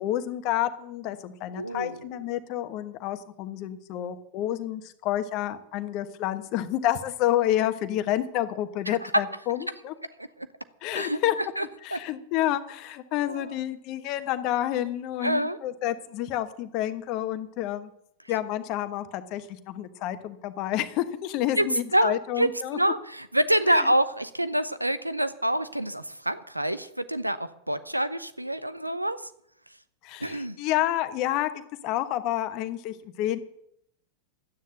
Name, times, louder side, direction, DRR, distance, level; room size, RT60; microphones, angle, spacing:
voice 1, 0.0-9.9 10.8-11.3 11.8-17.9 18.3-22.8 23.7-23.9 30.0-31.5 31.8-33.4, left 13 dB, 40° left, 10 dB, 1.2 m, -29 dB
voice 2, 1.6-2.1 8.9-9.0 10.9-11.2 11.6-11.7 11.9-12.0 13.3-13.5 15.2-15.6 21.6-21.7 21.9-29.2 30.2-30.6, right 1 dB, 85° right, 13 dB, 0.8 m, -26 dB
12.5 x 9.5 x 7.8 m, 0.73 s
figure-of-eight pair, 90°, 0 cm